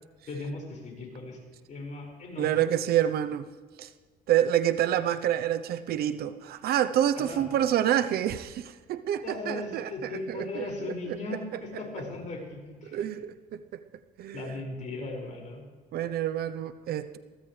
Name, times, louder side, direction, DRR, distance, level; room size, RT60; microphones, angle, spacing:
voice 1, 0.3-1.4 1.7-2.7 7.2-7.5 9.2-13.0 14.3-15.6, left 2 dB, 45° left, 0 dB, 5.7 m, -37 dB
voice 2, 2.4-3.5 3.8-3.9 4.3-11.1 11.5-11.6 12.8-13.8 14.2-14.6 15.9-17.2, right 11 dB, 65° right, 11 dB, 0.8 m, -28 dB
22.5 x 16.0 x 3.3 m, 1.5 s
cardioid pair, 110°, 17 cm